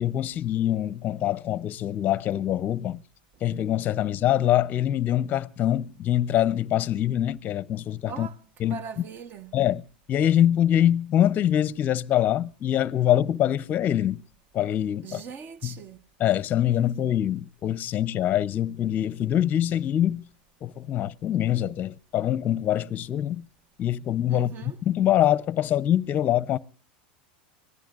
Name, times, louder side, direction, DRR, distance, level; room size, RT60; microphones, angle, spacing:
voice 1, 0.0-3.0 3.4-8.3 8.6-8.8 9.5-14.2 14.5-15.2 15.6-15.8 16.2-20.2 20.6-23.4 23.8-26.6, left 11 dB, 35° left, 0.6 m, -24 dB
voice 2, 8.1-9.6 15.0-16.0 24.3-24.8, right 7 dB, 40° right, 1.0 m, -40 dB
25.5 x 17.0 x 2.4 m
hypercardioid pair, 100°, 5 cm